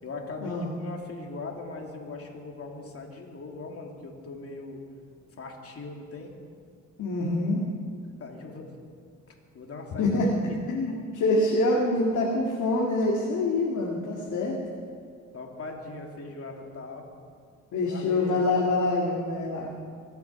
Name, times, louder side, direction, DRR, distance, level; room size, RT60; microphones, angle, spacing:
voice 1, 0.0-4.8 5.4-6.3 8.2-8.7 9.5-10.1 10.4-10.6 15.3-17.0 17.8-18.5, left 3 dB, 50° left, 1 dB, 2.7 m, -40 dB
voice 2, 7.0-7.6 10.0-10.3 10.7-14.6 17.7-19.7, left 2 dB, 75° left, -3 dB, 2.2 m, -25 dB
23.5 x 8.4 x 6.0 m, 2.2 s
cardioid pair, 95°, 31 cm